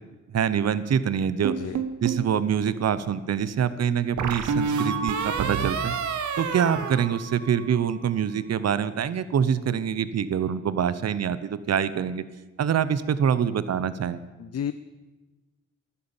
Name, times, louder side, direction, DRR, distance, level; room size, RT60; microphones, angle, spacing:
voice 1, 0.3-1.5 2.0-6.0 6.4-12.2 12.6-14.2, right 8 dB, 60° right, 15 dB, 0.8 m, -25 dB
sound 1, 1.4-2.3 4.2-7.8, right 6 dB, 75° right, 1.1 m, -28 dB
voice 2, 1.5-1.8 14.4-14.7, left 9 dB, 55° left, 12 dB, 0.7 m, -32 dB
14.5 x 12.0 x 7.2 m, 1.2 s
cardioid pair, 100°, 30 cm